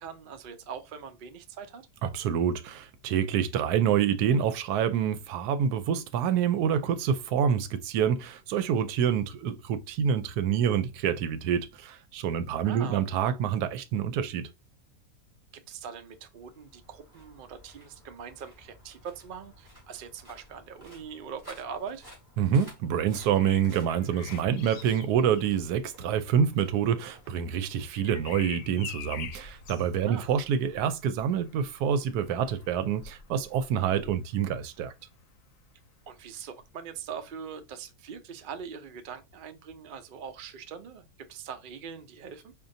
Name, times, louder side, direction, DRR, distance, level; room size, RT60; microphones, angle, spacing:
voice 1, 0.0-1.8 12.6-13.0 15.5-22.1 30.0-30.3 36.1-42.5, right 7 dB, 65° right, 0.5 m, -42 dB
voice 2, 2.0-14.5 22.4-34.9, right 8 dB, 90° right, 1.1 m, -27 dB
sound 1, 16.2-29.6, equal, 15° right, 2.3 m, -55 dB
Bird vocalization bird call bird song, 23.1-34.9 36.6-36.8, left 8 dB, 70° left, 0.9 m, -47 dB
5.1 x 2.6 x 2.6 m
omnidirectional pair, 1.6 m